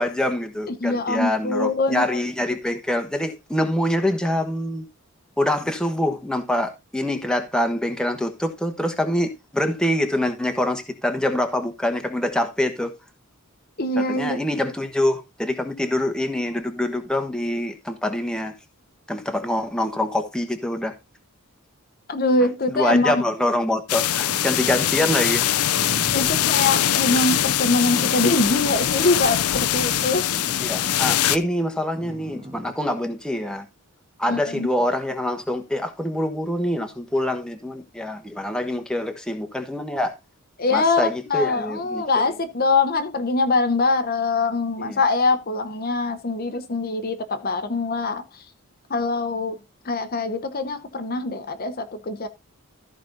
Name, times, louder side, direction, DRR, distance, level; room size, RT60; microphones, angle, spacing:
voice 1, 0.0-4.8 5.4-12.9 14.0-18.5 19.1-20.9 22.7-25.4 30.6-33.6 34.2-40.2 40.7-42.0 44.8-45.0, left 1 dB, 5° left, 1.1 m, -25 dB
voice 2, 0.8-2.2 13.8-14.4 22.1-23.2 26.1-30.4 34.3-34.7 40.6-41.0 41.3-48.2 48.9-49.6 49.8-52.3, left 3 dB, 40° left, 0.9 m, -23 dB
sound 1, 22.9-23.4 24.3-25.2 25.7-26.9 27.7-28.8 29.7-31.0 32.0-32.9 34.8-34.9, equal, 20° right, 1.4 m, -38 dB
sound 2, 23.9-31.4, left 11 dB, 85° left, 0.6 m, -22 dB
14.0 x 5.1 x 4.0 m
head